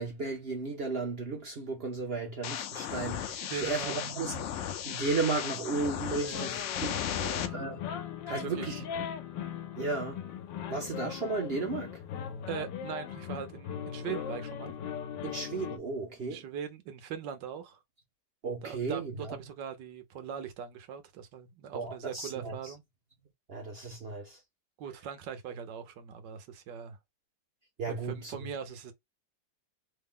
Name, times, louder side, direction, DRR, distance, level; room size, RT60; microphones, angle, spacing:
voice 1, 0.0-4.5 4.8-7.9 8.3-8.8 9.8-10.2 10.7-12.0 15.2-16.4 18.4-19.4 21.7-22.7 23.5-24.4 27.8-28.5, right 3 dB, 50° right, 0.7 m, -34 dB
sound 1, 2.4-7.5, left 9 dB, 70° left, 0.7 m, -35 dB
voice 2, 3.4-4.0 6.2-6.5 7.1-7.6 8.3-8.8 12.5-14.7 16.3-17.8 18.6-22.8 24.8-27.0 27.9-28.9, right 8 dB, 80° right, 1.5 m, -41 dB
sound 2, 6.3-15.8, left 9 dB, 85° left, 1.4 m, -39 dB
3.6 x 2.1 x 3.6 m
omnidirectional pair, 1.9 m